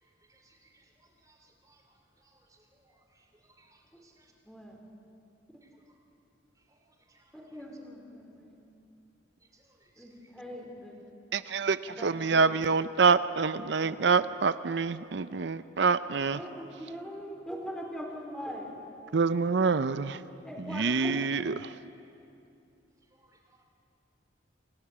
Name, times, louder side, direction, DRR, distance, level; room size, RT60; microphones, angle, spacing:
voice 1, 0.3-1.8 2.2-4.3 6.7-7.3 9.5-10.1 23.1-23.6, right 2 dB, 20° right, 3 dB, 2.7 m, -65 dB
voice 2, 4.4-4.8 7.3-8.6 10.0-11.0 11.9-12.6 13.6-14.0 16.3-18.7 20.4-21.3, equal, 5° left, 0 dB, 3.7 m, -42 dB
voice 3, 11.3-16.4 19.1-20.2 20.7-21.5, right 5 dB, 65° right, 14 dB, 0.6 m, -26 dB
27.5 x 16.5 x 8.6 m, 2.7 s
head